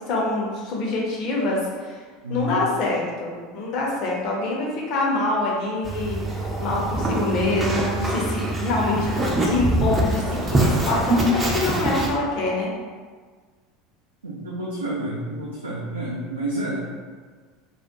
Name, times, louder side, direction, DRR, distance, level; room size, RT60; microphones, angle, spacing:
voice 1, 0.1-2.0 2.3-6.2 6.6-9.1 9.4-12.7, left 2 dB, 45° left, -3 dB, 0.6 m, -25 dB
voice 2, 2.2-2.6 14.2-16.8, right 1 dB, 80° right, -7 dB, 0.4 m, -29 dB
sound 1, 5.8-12.1, right 1 dB, 15° right, 0.4 m, -24 dB
2.3 x 2.1 x 2.8 m, 1.5 s
figure-of-eight pair, 75°, 0 cm